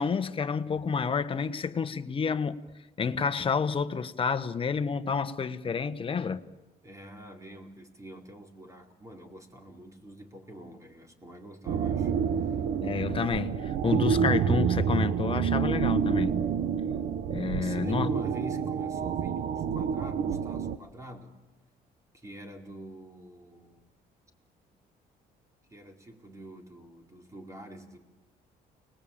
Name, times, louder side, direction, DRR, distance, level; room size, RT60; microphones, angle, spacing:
voice 1, 0.0-2.6 3.0-6.4 12.8-16.4 17.3-18.1, left 6 dB, 30° left, 1.3 m, -29 dB
voice 2, 6.8-12.6 17.6-21.4 22.1-23.9 25.7-28.0, equal, 20° right, 4.6 m, -46 dB
sound 1, 11.7-20.8, right 7 dB, 60° right, 1.1 m, -28 dB
30.0 x 20.5 x 8.8 m
cardioid pair, 110°, 17 cm